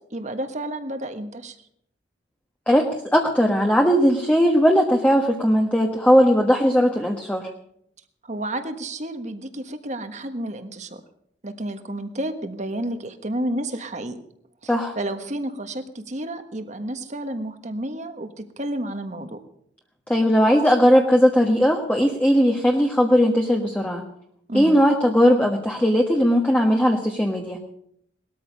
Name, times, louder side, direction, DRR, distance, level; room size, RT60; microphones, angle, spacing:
voice 1, 0.1-1.6 8.2-11.0 11.4-14.2 14.6-19.4 24.5-24.8, right 1 dB, 40° right, 8 dB, 1.4 m, -31 dB
voice 2, 2.7-7.5 14.7-14.9 20.1-24.0 24.5-27.6, equal, 5° left, 1 dB, 1.3 m, -18 dB
19.5 x 13.5 x 5.3 m, 0.71 s
head